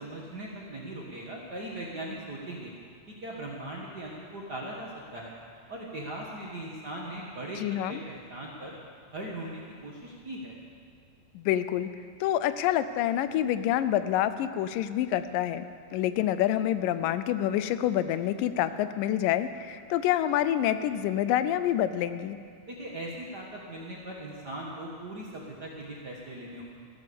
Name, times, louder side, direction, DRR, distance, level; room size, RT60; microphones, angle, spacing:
voice 1, 0.0-2.7 3.1-5.3 5.7-8.8 9.1-10.6 22.7-26.6, right 1 dB, 45° right, -3 dB, 1.4 m, -39 dB
voice 2, 7.6-8.0 11.4-11.9 12.2-15.6 15.9-22.4, left 11 dB, 85° left, 12 dB, 2.3 m, -27 dB
15.0 x 12.0 x 6.9 m, 2.2 s
omnidirectional pair, 3.8 m